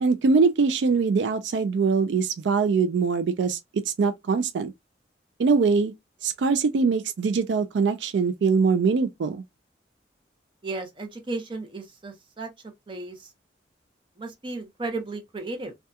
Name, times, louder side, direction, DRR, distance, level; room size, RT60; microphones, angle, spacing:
voice 1, 0.0-4.7 5.4-5.9 6.2-9.4, right 4 dB, 80° right, 0.4 m, -23 dB
voice 2, 10.6-12.5 12.9-13.3 14.2-15.7, right 3 dB, 25° right, 0.7 m, -34 dB
2.7 x 2.3 x 2.2 m
head